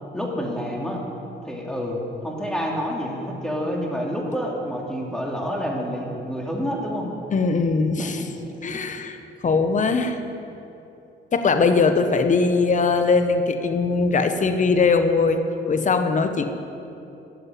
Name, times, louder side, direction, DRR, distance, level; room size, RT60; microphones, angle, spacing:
voice 1, 0.1-1.0 1.4-7.1 8.0-8.3 8.7-8.8, equal, 5° left, -2 dB, 2.9 m, -28 dB
voice 2, 7.3-8.2 8.6-9.2 9.4-10.2 11.3-15.4 15.7-16.4, left 4 dB, 40° left, 8 dB, 1.1 m, -20 dB
14.0 x 7.7 x 9.5 m, 2.8 s
cardioid pair, 90°, 20 cm